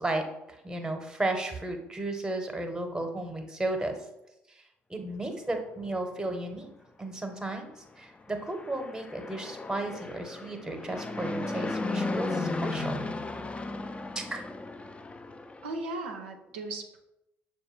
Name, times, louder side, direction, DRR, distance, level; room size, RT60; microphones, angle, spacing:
voice 1, 0.0-3.9 4.9-6.7 7.0-13.0 14.1-14.4, right 2 dB, 10° right, 5 dB, 0.8 m, -34 dB
Fixed-wing aircraft airplane, 8.3-15.7, left 2 dB, 20° left, 0.4 m, -35 dB
voice 2, 15.6-17.0, right 2 dB, 80° right, 3 dB, 0.5 m, -37 dB
6.5 x 2.2 x 3.1 m, 0.88 s
figure-of-eight pair, 50°, 6 cm